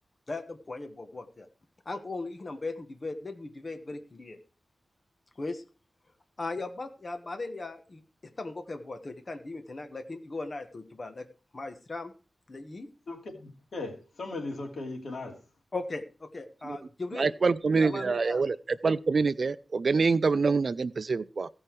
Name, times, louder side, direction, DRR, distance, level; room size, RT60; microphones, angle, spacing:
voice 1, 0.3-1.5 1.8-4.4 5.4-5.6 6.4-11.3 11.5-12.1 12.5-12.9 15.7-17.4 17.7-18.4, left 3 dB, 40° left, 1.3 m, -38 dB
voice 2, 13.1-15.4, left 2 dB, 80° left, 2.5 m, -38 dB
voice 3, 17.1-18.6 18.8-21.5, right 4 dB, 60° right, 0.4 m, -26 dB
16.0 x 5.5 x 4.6 m
wide cardioid pair, 115°, 0 cm